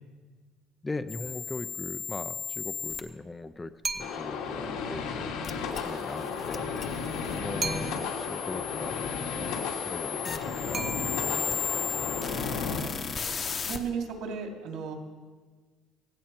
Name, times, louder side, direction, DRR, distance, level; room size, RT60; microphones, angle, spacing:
voice 1, 0.8-5.3 5.8-6.7 7.3-7.9 8.2-9.0 9.4-12.1, left 2 dB, 10° left, 10 dB, 0.4 m, -40 dB
sound 1, 1.1-3.0 5.4-13.8, left 6 dB, 25° left, 0.9 m, -36 dB
sound 2, 3.8-4.5 7.6-8.3 10.7-11.5, right 4 dB, 25° right, 0.8 m, -36 dB
sound 3, 4.0-12.8, left 5 dB, 90° left, 2.7 m, -34 dB
voice 2, 12.8-14.9, right 6 dB, 65° right, 2 dB, 2.6 m, -36 dB
17.0 x 16.5 x 4.4 m, 1.4 s
cardioid pair, 165°, 0 cm